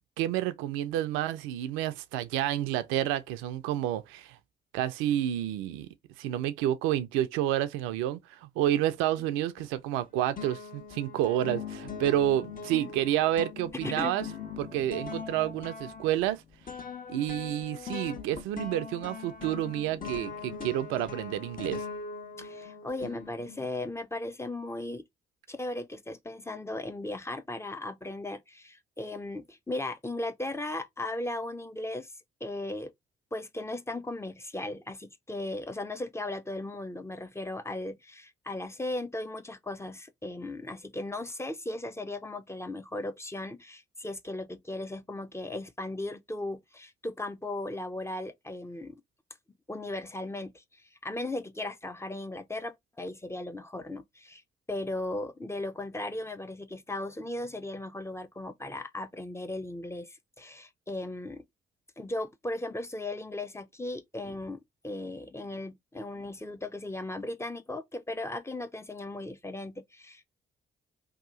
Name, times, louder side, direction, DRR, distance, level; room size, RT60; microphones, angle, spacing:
voice 1, 0.2-4.4 4.7-5.9 6.2-14.3 14.6-16.4 17.1-21.9, right 12 dB, 75° right, 0.4 m, -29 dB
sound 1, 9.6-10.0 10.4-23.8, left 5 dB, 45° left, 1.1 m, -41 dB
voice 2, 13.7-14.2 22.4-25.0 25.5-32.1 32.4-32.9 33.3-49.0 49.7-54.4 54.7-61.4 62.0-70.3, left 2 dB, 10° left, 0.6 m, -37 dB
2.8 x 2.3 x 3.7 m
hypercardioid pair, 40°, 21 cm